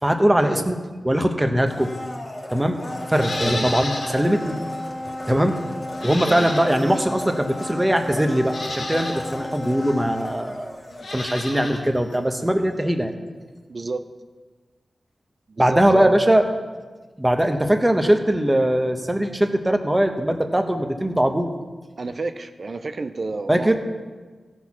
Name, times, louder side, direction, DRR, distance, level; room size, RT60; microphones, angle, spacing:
voice 1, 0.0-0.8 1.0-1.9 2.5-2.8 3.1-4.6 5.3-5.6 6.0-10.7 11.1-13.1 15.6-16.4 17.2-21.5 23.5-23.8, right 1 dB, 10° right, 5 dB, 1.1 m, -20 dB
Domestic sounds home sounds, 1.6-11.6 11.9-12.0, left 1 dB, 30° left, 1.5 m, -33 dB
Livestock farm animals working animals, 3.1-4.2 4.6-4.7 5.9-7.0 7.8-7.9 8.4-9.2 10.9-11.8 12.1-12.2, left 2 dB, 75° left, 2.3 m, -32 dB
voice 2, 3.4-3.8 6.2-6.6 13.7-14.0 15.5-16.2 22.0-23.7, right 3 dB, 50° right, 9 dB, 0.6 m, -31 dB
16.0 x 6.3 x 5.9 m, 1.4 s
wide cardioid pair, 100°, 0 cm